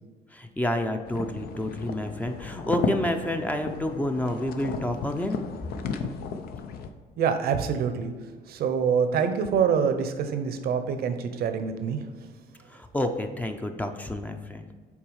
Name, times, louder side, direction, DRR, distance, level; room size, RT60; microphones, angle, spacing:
voice 1, 0.3-5.4 12.6-14.7, left 1 dB, 10° left, 5 dB, 0.6 m, -29 dB
sound 1, 1.1-6.9, left 5 dB, 65° left, 0.7 m, -34 dB
voice 2, 7.2-8.1 8.5-12.0, right 7 dB, 65° right, 8 dB, 0.8 m, -25 dB
7.2 x 4.6 x 4.8 m, 1.5 s
cardioid pair, 110°, 17 cm